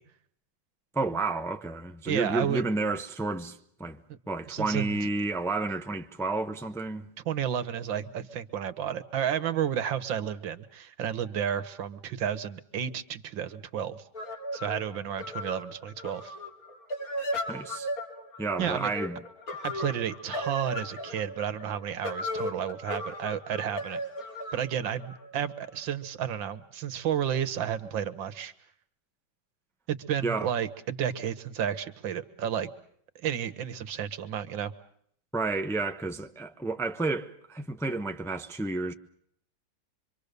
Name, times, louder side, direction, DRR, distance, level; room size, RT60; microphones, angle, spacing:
voice 1, 0.9-4.0 4.3-7.1 17.5-17.9 18.4-19.2 30.2-30.5 35.3-38.9, right 3 dB, ahead, 0.6 m, -31 dB
voice 2, 2.1-2.6 4.1-4.2 4.5-5.1 7.3-14.0 14.5-16.4 18.6-18.9 19.6-24.0 24.5-28.5 29.9-32.7 33.2-34.7, right 9 dB, 90° right, 1.9 m, -32 dB
sound 1, 14.1-25.8, left 1 dB, 50° left, 3.0 m, -36 dB
25.5 x 25.0 x 6.7 m
omnidirectional pair, 2.0 m